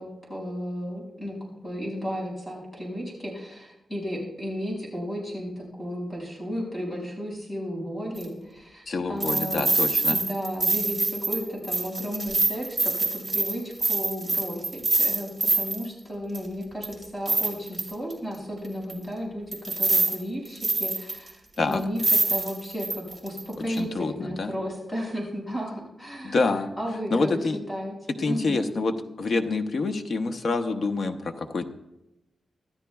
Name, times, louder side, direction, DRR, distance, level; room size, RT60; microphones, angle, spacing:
voice 1, 0.0-1.4 1.6-9.7 10.1-19.4 19.8-22.0 22.3-26.4 26.8-27.4 27.7-28.6, equal, 15° left, -3 dB, 5.6 m, -34 dB
sound 1, 8.2-8.3 9.2-15.9 16.3-16.4 16.8-18.1 18.9-19.0 19.5-20.2 20.4-21.3 21.7-21.8 22.0-23.4 23.8-23.9, right 3 dB, 10° right, 2.6 m, -25 dB
voice 2, 8.9-10.2 21.6-21.8 23.6-24.5 26.2-26.7 27.1-27.6 28.2-31.7, left 3 dB, 50° left, 7 dB, 0.9 m, -27 dB
25.5 x 13.0 x 2.3 m, 0.91 s
wide cardioid pair, 180°, 0 cm